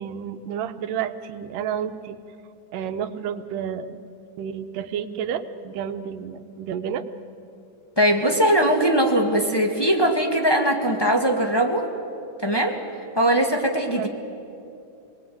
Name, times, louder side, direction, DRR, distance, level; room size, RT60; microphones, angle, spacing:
voice 1, 0.0-2.2 2.7-4.0 4.4-7.0 14.0-14.1, right 8 dB, 80° right, 10 dB, 2.5 m, -30 dB
voice 2, 8.0-11.9 12.4-12.8 13.1-14.1, right 1 dB, 10° left, 0 dB, 1.3 m, -20 dB
27.5 x 20.5 x 9.5 m, 2.7 s
omnidirectional pair, 3.8 m